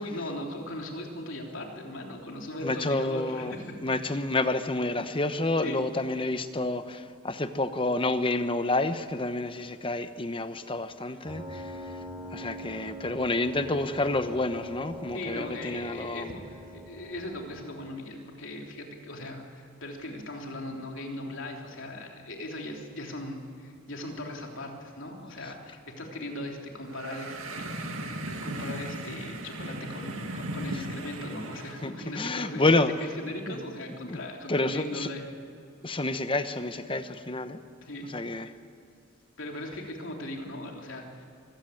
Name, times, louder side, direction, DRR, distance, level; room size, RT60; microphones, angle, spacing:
voice 1, 0.0-3.7 5.6-5.8 15.1-28.1 28.4-35.3 37.9-38.3 39.4-41.3, left 1 dB, 65° left, 1 dB, 3.4 m, -39 dB
voice 2, 2.6-3.5 3.8-11.8 12.3-16.3 31.8-32.9 33.5-33.6 34.0-34.2 34.5-35.1 35.8-37.6 38.1-38.5, left 2 dB, 25° left, 10 dB, 1.0 m, -29 dB
Piano, 11.2-17.7, equal, 5° right, 4.6 m, -43 dB
sound 1, 26.9-31.9, right 1 dB, 80° right, 2.2 m, -37 dB
24.0 x 15.0 x 9.1 m, 2.5 s
head